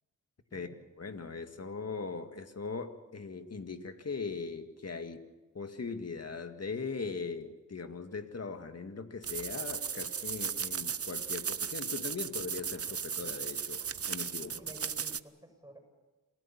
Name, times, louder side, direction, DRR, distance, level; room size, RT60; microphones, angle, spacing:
voice 1, 0.5-5.2 5.5-13.8 14.1-14.5, left 4 dB, 50° left, 8 dB, 1.9 m, -40 dB
sound 1, 9.2-15.2, right 7 dB, 45° right, 0.7 m, -36 dB
voice 2, 14.5-15.8, equal, 10° right, 5 dB, 6.6 m, -51 dB
27.0 x 16.0 x 7.3 m, 1.2 s
cardioid pair, 60°, 34 cm